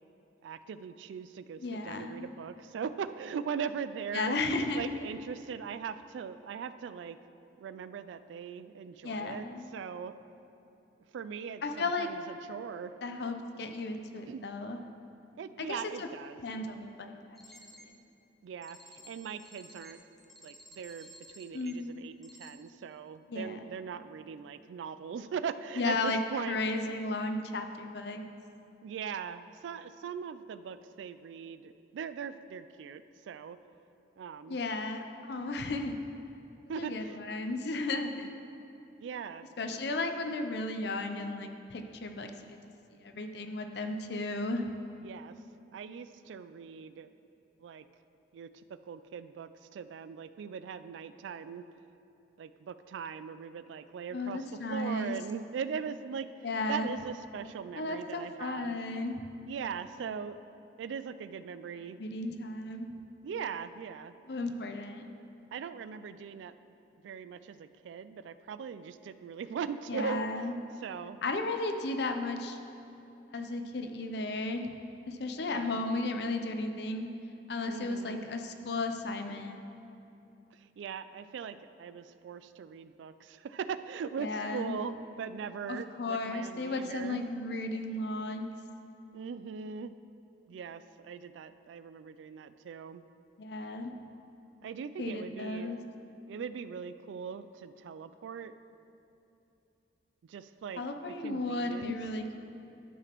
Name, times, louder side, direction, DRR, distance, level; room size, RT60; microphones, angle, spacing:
voice 1, 0.4-4.4 4.7-7.2 7.6-10.1 11.1-12.9 14.2-14.4 15.4-16.4 18.4-20.0 20.4-26.6 28.8-33.6 34.2-34.6 36.7-37.2 39.0-39.5 45.0-45.3 45.7-47.1 47.6-47.9 48.3-51.6 52.4-56.3 56.7-58.8 59.5-60.4 60.8-62.0 63.2-64.1 65.5-66.6 67.0-70.3 70.8-71.2 75.5-75.8 77.7-78.3 80.5-87.2 89.1-90.0 90.5-93.0 94.6-95.7 96.3-98.6 100.3-100.8 101.2-102.0, right 6 dB, 90° right, 13 dB, 0.3 m, -40 dB
voice 2, 1.6-2.3 4.1-4.9 9.0-9.8 11.6-12.1 13.0-14.8 15.6-16.1 16.4-18.0 21.5-21.9 23.3-23.6 25.8-26.2 26.5-28.2 34.5-35.9 36.8-38.3 39.6-42.6 43.0-44.7 54.1-55.2 56.4-56.9 57.8-59.2 62.0-62.9 64.3-65.1 69.9-70.6 71.2-72.6 73.3-74.7 75.1-77.1 77.5-79.6 84.2-84.8 85.7-88.5 93.4-93.9 95.0-95.8 100.8-102.4, left 2 dB, 65° left, 6 dB, 0.5 m, -34 dB
sound 1, 17.4-17.9 18.6-21.7 22.2-22.5, left 1 dB, ahead, 0.5 m, -53 dB
12.0 x 5.9 x 3.0 m, 2.9 s
head